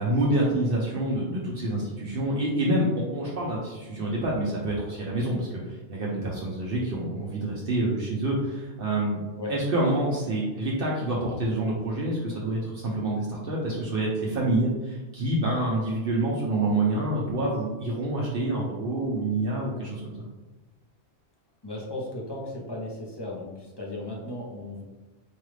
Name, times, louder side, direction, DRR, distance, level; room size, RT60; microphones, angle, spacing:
voice 1, 0.0-9.2 9.5-20.3, right 1 dB, 60° right, -4 dB, 0.9 m, -27 dB
voice 2, 21.6-24.8, left 2 dB, 25° left, -3 dB, 0.7 m, -36 dB
4.7 x 2.4 x 3.2 m, 1.2 s
omnidirectional pair, 1.1 m